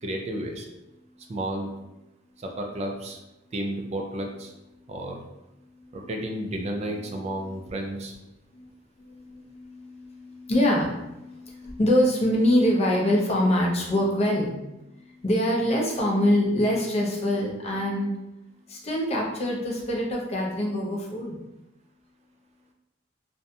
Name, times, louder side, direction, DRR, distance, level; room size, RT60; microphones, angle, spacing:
voice 1, 0.0-0.7 1.3-1.7 2.4-3.2 3.5-4.5 4.9-5.2 5.9-8.2, right 1 dB, 35° right, 2 dB, 0.4 m, -32 dB
voice 2, 9.0-18.1 18.7-21.4, equal, 35° left, -2 dB, 0.5 m, -25 dB
2.5 x 2.2 x 2.7 m, 0.95 s
head